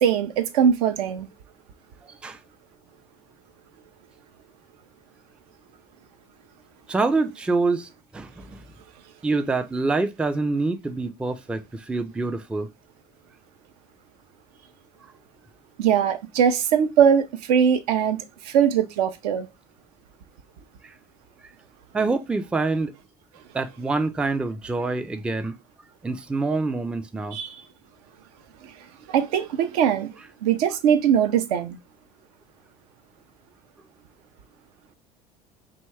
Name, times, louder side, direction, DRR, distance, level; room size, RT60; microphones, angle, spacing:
voice 1, 0.0-1.3 15.8-19.5 27.3-27.6 29.1-30.1 30.4-31.8, right 8 dB, 65° right, 0.4 m, -21 dB
voice 2, 6.9-8.6 9.2-12.7 20.8-20.9 21.9-22.9 23.5-25.6 26.0-27.4, right 3 dB, 5° right, 0.3 m, -26 dB
2.7 x 2.2 x 3.1 m
figure-of-eight pair, 60°, 21 cm